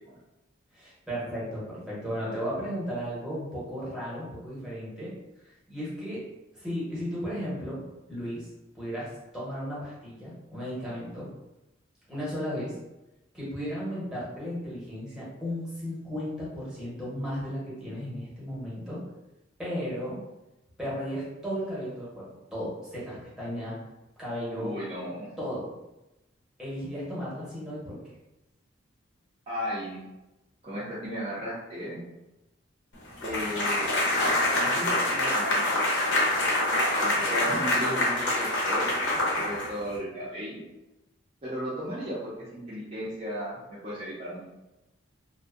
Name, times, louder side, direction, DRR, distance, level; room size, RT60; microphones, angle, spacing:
voice 1, 0.7-5.1 5.4-6.2 6.5-7.8 8.1-8.5 8.7-11.3 12.1-12.7 13.3-19.0 19.6-20.2 20.8-23.8 24.2-24.7 25.4-25.7 26.6-28.0, equal, 5° right, -8 dB, 0.9 m, -35 dB
voice 2, 24.6-25.3 29.5-30.0 30.6-32.0 33.2-33.9 34.6-36.0 37.0-39.1 39.4-40.6 41.4-44.5, equal, 30° right, -9 dB, 0.5 m, -35 dB
sound 1, 33.2-40.0, left 1 dB, 65° left, 0.7 m, -26 dB
2.6 x 2.1 x 2.4 m, 0.99 s
head